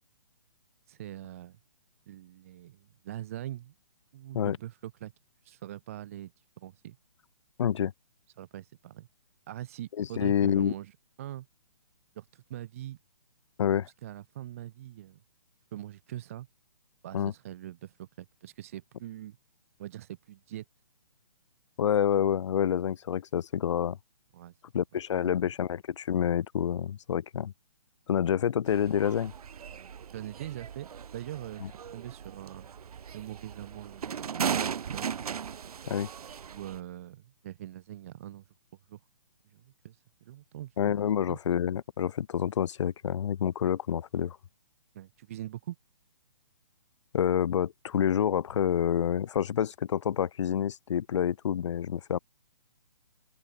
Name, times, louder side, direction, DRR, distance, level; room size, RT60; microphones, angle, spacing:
voice 1, 0.9-1.6 2.1-3.7 4.1-5.1 5.4-7.0 8.4-9.1 9.5-11.5 12.1-13.0 13.8-15.2 15.7-16.5 17.0-19.4 19.8-20.6 24.3-24.8 25.2-25.5 30.1-32.7 33.1-34.6 34.9-35.1 36.4-38.5 38.9-39.0 39.5-40.8 41.2-41.4 44.9-45.8, right 13 dB, 20° right, 0.6 m, -43 dB
voice 2, 7.6-7.9 10.0-10.7 13.6-13.9 17.1-17.3 21.8-24.0 24.7-27.5 28.1-29.3 31.6-31.7 35.9-36.1 40.8-44.4 47.1-52.2, left 9 dB, 50° left, 0.4 m, -28 dB
sound 1, 28.7-36.8, right 7 dB, 70° right, 0.7 m, -37 dB
open air
hypercardioid pair, 165°, 20 cm